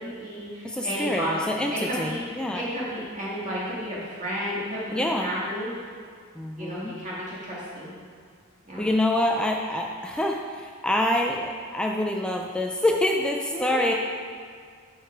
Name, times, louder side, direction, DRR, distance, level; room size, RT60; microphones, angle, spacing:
voice 1, 0.0-1.5 1.8-2.2 2.5-5.7 6.6-7.9 8.7-8.8 13.5-13.9, equal, 35° right, -8 dB, 2.0 m, -32 dB
voice 2, 0.6-2.7 4.9-5.3 6.4-6.9 8.8-13.9, left 1 dB, 5° left, 1 dB, 0.4 m, -26 dB
12.0 x 4.8 x 4.6 m, 2.1 s
head